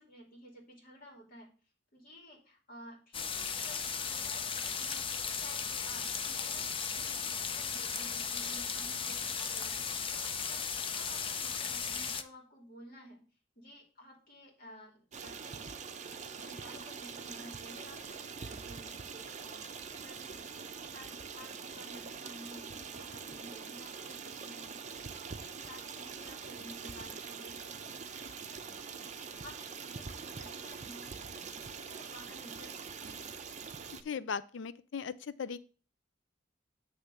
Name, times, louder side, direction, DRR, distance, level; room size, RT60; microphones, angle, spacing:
voice 1, 0.0-1.5 1.9-9.8 10.1-10.6 10.9-13.3 13.6-15.6 16.2-19.0 19.4-24.7 25.1-33.3, equal, 50° left, 0 dB, 2.4 m, -54 dB
sound 1, 3.1-12.2, left 6 dB, 30° left, 0.5 m, -36 dB
Stream, 15.1-34.0, right 5 dB, 40° right, 0.6 m, -44 dB
voice 2, 34.0-35.6, left 6 dB, 80° left, 15 dB, 0.4 m, -38 dB
8.2 x 3.4 x 6.6 m, 0.38 s
head